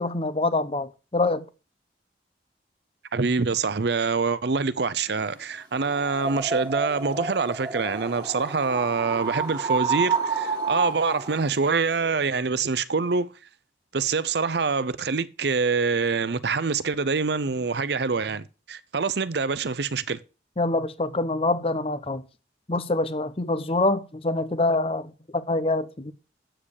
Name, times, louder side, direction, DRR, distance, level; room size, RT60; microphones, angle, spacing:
voice 1, 0.0-1.5 20.6-22.2 22.7-26.1, left 2 dB, 30° left, 0.9 m, -25 dB
voice 2, 3.1-13.3 13.9-20.2, right 4 dB, 65° right, 0.6 m, -25 dB
sound 1, 5.8-11.5, right 4 dB, 25° right, 2.1 m, -29 dB
8.7 x 7.6 x 6.5 m
head